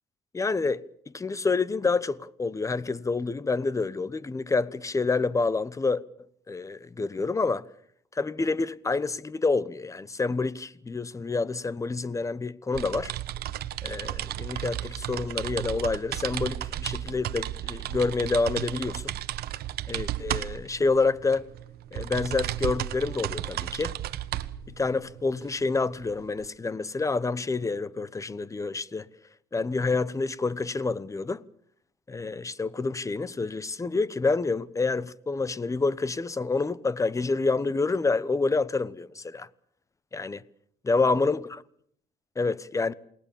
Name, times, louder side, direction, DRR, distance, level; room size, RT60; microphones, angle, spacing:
voice 1, 0.3-6.0 6.5-7.7 8.1-13.1 13.8-19.2 19.9-21.5 21.9-23.9 24.8-29.1 29.5-31.4 32.1-39.5 40.1-40.4 40.8-41.4 42.4-42.9, left 3 dB, 20° left, 1.0 m, -28 dB
sound 1, 12.7-26.5, right 13 dB, 65° right, 1.2 m, -34 dB
28.5 x 20.0 x 7.2 m
cardioid pair, 110°, 17 cm